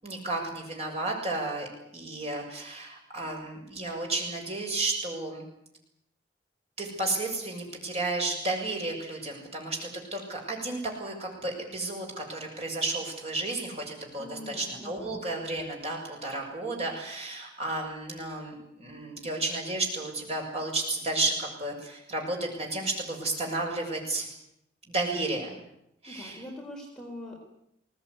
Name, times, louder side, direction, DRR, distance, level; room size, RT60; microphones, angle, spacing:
voice 1, 0.0-1.7 1.9-5.4 6.8-24.3 24.9-25.6 26.0-26.4, right 2 dB, 35° right, 1 dB, 6.9 m, -32 dB
voice 2, 14.2-15.2 26.1-27.5, left 1 dB, 5° left, -1 dB, 4.1 m, -43 dB
22.0 x 18.5 x 9.8 m, 0.79 s
head